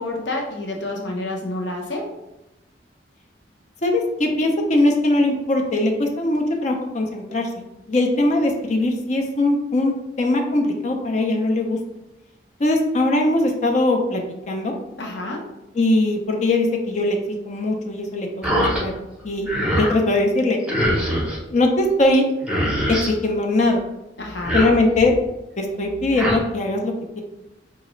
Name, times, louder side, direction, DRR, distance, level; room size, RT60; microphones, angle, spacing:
voice 1, 0.0-2.1 15.0-15.5 24.2-24.6, left 2 dB, 75° left, 0 dB, 0.8 m, -29 dB
voice 2, 3.8-7.5 7.9-11.8 12.6-14.2 14.5-14.7 15.8-17.2 17.5-18.9 19.2-19.5 19.8-20.6 21.5-22.3 22.9-23.8 24.5-25.2 25.6-27.2, left 2 dB, 40° left, 2 dB, 0.5 m, -20 dB
sound 1, 18.4-18.8 19.2-20.0 20.7-21.4 22.1-22.2 22.4-23.1 24.3-25.1 25.9-26.4, equal, 5° right, 0.7 m, -23 dB
4.9 x 2.4 x 3.0 m, 0.94 s
head